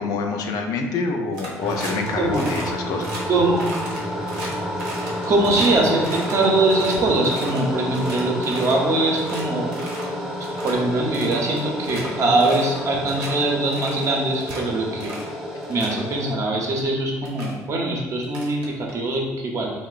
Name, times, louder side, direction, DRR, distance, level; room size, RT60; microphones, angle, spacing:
voice 1, 0.0-3.1, left 4 dB, 65° left, 3 dB, 0.4 m, -26 dB
sound 1, 1.3-2.1 2.3-2.7 3.0-3.2 3.6-5.7 6.0-7.6 7.9-8.8 9.1-9.4 9.7-10.1 10.4-10.7 11.1-12.1 12.4-12.8 13.1-13.3 13.7-14.6 15.0-15.3 15.6-16.0 16.8-16.9 17.2-17.5 18.2-19.2, right 2 dB, 90° right, 0.7 m, -36 dB
sound 2, 1.6-16.4, equal, 10° right, 0.6 m, -30 dB
voice 2, 3.3-3.6 5.3-9.7 10.6-15.1 15.7-19.7, right 2 dB, 50° right, 0 dB, 0.6 m, -22 dB
2.9 x 2.0 x 2.4 m, 1.2 s
supercardioid pair, 70°, 7 cm